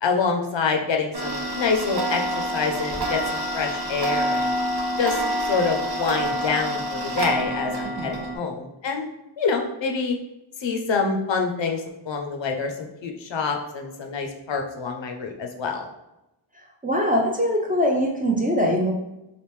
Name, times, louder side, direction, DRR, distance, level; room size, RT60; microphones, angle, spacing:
voice 1, 0.0-4.6 5.0-9.1 9.4-10.1 10.6-15.9, left 5 dB, 65° left, 3 dB, 0.6 m, -26 dB
Tick-tock, 1.1-8.4, right 1 dB, 50° right, 0.8 m, -27 dB
voice 2, 16.8-18.9, equal, 20° right, -1 dB, 0.4 m, -22 dB
3.3 x 2.5 x 3.0 m, 0.91 s
wide cardioid pair, 100°, 48 cm